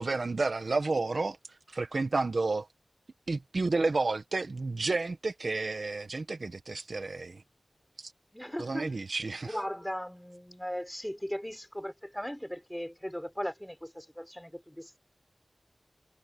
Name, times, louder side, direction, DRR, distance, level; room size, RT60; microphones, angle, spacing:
voice 1, 0.0-1.4 1.7-2.7 3.3-7.4 8.0-8.1 8.6-9.6, right 3 dB, 70° right, 1.6 m, -31 dB
voice 2, 8.3-8.9 9.5-15.0, equal, 5° left, 5.0 m, -38 dB
wide cardioid pair, 55°, 0 cm